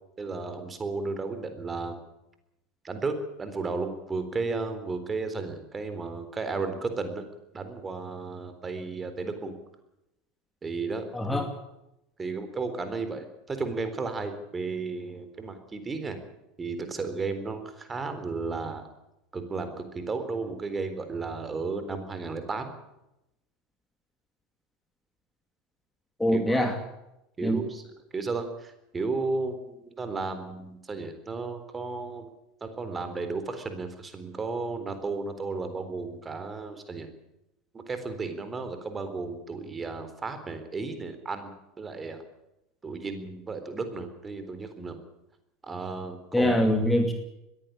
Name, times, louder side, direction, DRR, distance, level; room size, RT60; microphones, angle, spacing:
voice 1, 0.2-2.0 2.8-7.2 7.5-9.6 10.6-11.0 11.3-11.4 12.2-16.2 16.6-18.9 19.3-22.7 26.3-26.6 27.4-27.8 28.1-32.3 32.6-37.1 37.7-42.2 42.8-45.0 45.6-46.5, right 4 dB, 20° right, 9 dB, 3.9 m, -33 dB
voice 2, 11.1-11.5 26.2-26.8 27.4-27.6 46.3-47.1, left 1 dB, 5° left, 5 dB, 2.6 m, -24 dB
21.0 x 15.5 x 8.6 m, 0.87 s
figure-of-eight pair, 75°, 0 cm